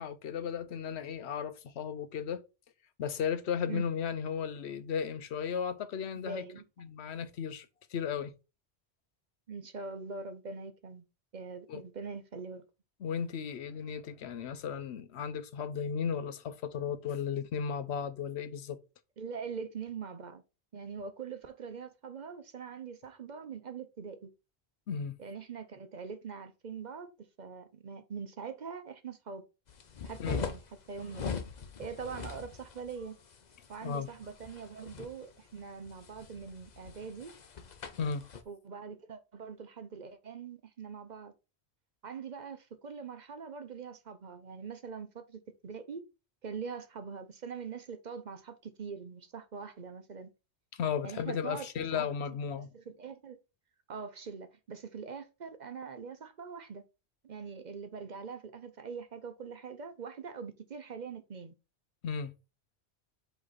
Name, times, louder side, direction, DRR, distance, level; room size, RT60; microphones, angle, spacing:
voice 1, 0.0-2.4 3.0-6.4 6.8-8.3 11.7-11.8 13.0-18.8 24.9-25.1 30.2-30.4 33.8-34.1 38.0-38.3 50.7-52.7 62.0-62.3, left 7 dB, 90° left, 1.0 m, -35 dB
voice 2, 6.1-6.6 9.5-11.0 11.3-12.7 19.2-20.4 20.7-24.3 25.2-29.4 30.0-30.6 30.9-31.4 31.8-33.2 33.7-37.3 38.5-41.3 42.0-46.0 46.4-50.3 51.0-52.1 52.6-53.4 53.9-56.8 57.2-61.5, right 5 dB, 50° right, 0.7 m, -43 dB
sound 1, 29.7-38.4, left 5 dB, 45° left, 0.8 m, -42 dB
7.7 x 3.2 x 4.1 m
omnidirectional pair, 1.1 m